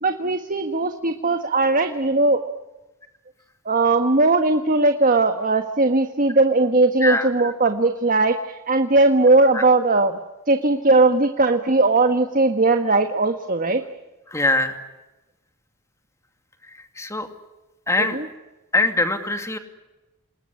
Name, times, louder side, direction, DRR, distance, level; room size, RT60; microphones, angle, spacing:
voice 1, 0.0-2.4 3.6-10.2 10.5-13.8 18.0-18.3, right 2 dB, 40° right, 7 dB, 1.4 m, -19 dB
voice 2, 14.3-14.8 17.0-17.3 17.9-18.2 18.7-19.6, left 2 dB, 15° left, 7 dB, 2.5 m, -22 dB
27.5 x 21.0 x 9.9 m, 1.1 s
head